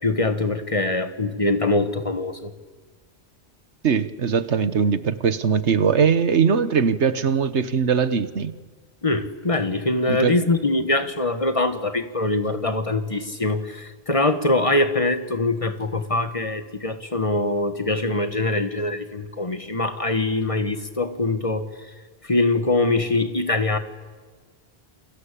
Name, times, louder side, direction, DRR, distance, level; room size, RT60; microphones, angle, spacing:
voice 1, 0.0-2.5 9.0-21.7 22.2-23.8, left 2 dB, 30° left, 9 dB, 1.6 m, -23 dB
voice 2, 3.8-8.5 10.1-10.3, right 6 dB, 90° right, 13 dB, 1.5 m, -21 dB
29.0 x 23.5 x 8.5 m, 1.4 s
omnidirectional pair, 1.1 m